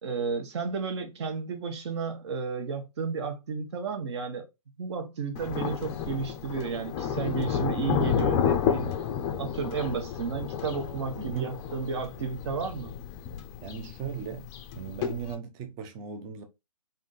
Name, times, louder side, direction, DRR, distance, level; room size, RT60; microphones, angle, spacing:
voice 1, 0.0-4.4 4.8-8.9 9.4-12.9, right 5 dB, 50° right, 1.1 m, -32 dB
Thunder, 5.4-15.3, left 8 dB, 20° left, 0.5 m, -31 dB
voice 2, 11.2-11.5 13.6-16.4, right 7 dB, 20° right, 0.6 m, -37 dB
3.5 x 2.6 x 4.0 m
hypercardioid pair, 135°, 19 cm